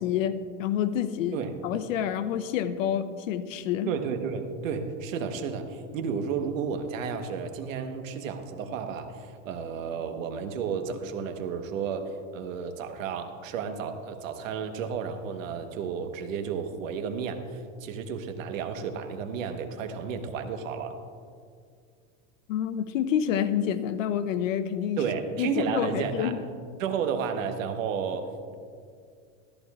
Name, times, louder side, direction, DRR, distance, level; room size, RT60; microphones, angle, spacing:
voice 1, 0.0-3.9 22.5-25.0 25.4-26.4, left 9 dB, 80° left, 11 dB, 0.8 m, -28 dB
voice 2, 3.9-21.0 25.0-26.3 26.8-28.6, right 6 dB, 85° right, 7 dB, 1.2 m, -32 dB
14.0 x 14.0 x 2.4 m, 2.2 s
supercardioid pair, 145°, 38 cm